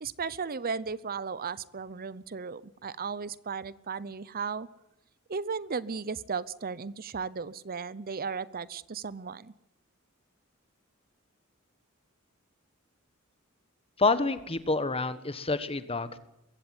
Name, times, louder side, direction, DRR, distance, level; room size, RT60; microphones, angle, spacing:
voice 1, 0.0-4.7 5.3-9.5, right 5 dB, 45° right, 18 dB, 0.7 m, -35 dB
voice 2, 14.0-16.2, left 3 dB, 25° left, 13 dB, 1.5 m, -28 dB
22.5 x 16.0 x 9.7 m, 0.88 s
head